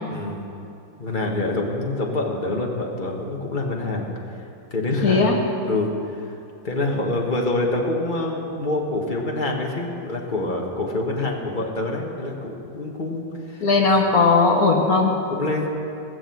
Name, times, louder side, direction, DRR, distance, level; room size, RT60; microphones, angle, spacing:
voice 1, 0.1-0.4 1.0-4.1 4.7-5.3 5.6-6.3 6.6-14.0 15.3-15.7, left 2 dB, 25° left, 0 dB, 1.5 m, -26 dB
voice 2, 5.0-5.3 13.6-15.1, left 4 dB, 55° left, 1 dB, 1.5 m, -17 dB
19.0 x 6.6 x 7.7 m, 2.7 s
omnidirectional pair, 2.1 m